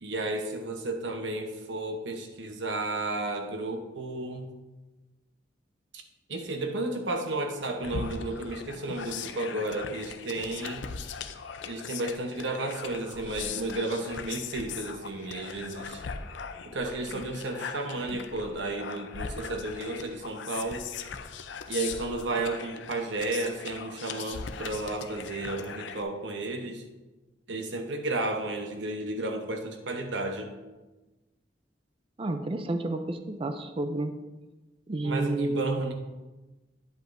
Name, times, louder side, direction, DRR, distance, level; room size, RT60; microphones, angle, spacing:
voice 1, 0.0-4.5 5.9-6.0 6.3-10.9 11.7-16.0 16.6-20.9 21.7-26.8 27.5-30.6 35.0-35.9, right 2 dB, 90° right, 4 dB, 0.9 m, -33 dB
sound 1, 7.8-26.0, left 6 dB, 90° left, 0.5 m, -39 dB
voice 2, 32.2-34.1 34.9-35.8, right 2 dB, 30° right, 7 dB, 0.5 m, -30 dB
9.2 x 8.0 x 2.6 m, 1.1 s
head